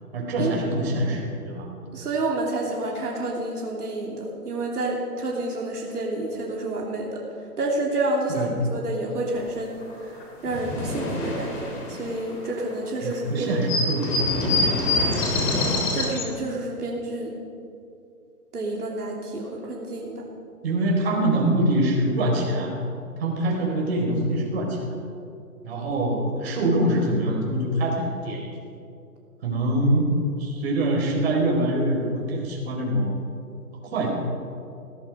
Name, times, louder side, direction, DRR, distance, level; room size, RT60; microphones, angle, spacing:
voice 1, 0.1-1.7 8.3-8.6 13.0-15.5 20.6-22.7 23.2-24.8 25.6-28.5 29.4-30.1 30.4-33.1 33.9-34.1, right 1 dB, 40° right, -1 dB, 4.7 m, -24 dB
voice 2, 1.9-7.2 7.6-13.5 15.9-17.3 18.5-20.2, right 2 dB, 75° right, -2 dB, 3.1 m, -29 dB
sound 1, 9.9-10.0 10.2-12.7 13.1-13.2 13.4-16.3, left 2 dB, 15° left, 2.3 m, -25 dB
17.0 x 14.5 x 5.3 m, 2.5 s
hypercardioid pair, 155°, 45 cm